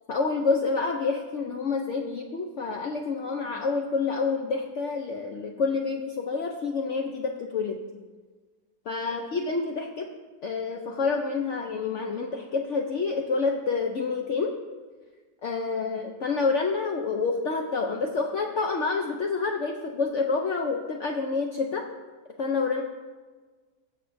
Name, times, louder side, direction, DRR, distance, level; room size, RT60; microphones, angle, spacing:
voice 1, 0.1-7.8 8.9-10.1 10.4-14.5 15.4-21.9 22.4-22.8, left 4 dB, 60° left, 2 dB, 0.8 m, -28 dB
20.5 x 7.0 x 2.6 m, 1.4 s
omnidirectional pair, 1.8 m